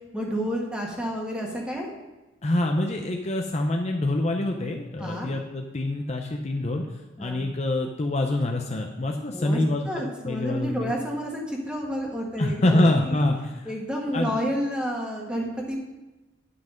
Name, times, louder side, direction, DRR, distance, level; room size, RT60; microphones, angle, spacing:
voice 1, 0.1-1.9 5.0-5.3 7.2-7.4 9.3-9.6 9.9-13.2 13.6-15.8, equal, 5° right, -2 dB, 1.6 m, -30 dB
voice 2, 2.4-6.8 7.2-10.9 12.4-13.4 14.1-14.4, left 1 dB, 35° left, 2 dB, 0.6 m, -25 dB
9.6 x 5.9 x 5.1 m, 1.1 s
head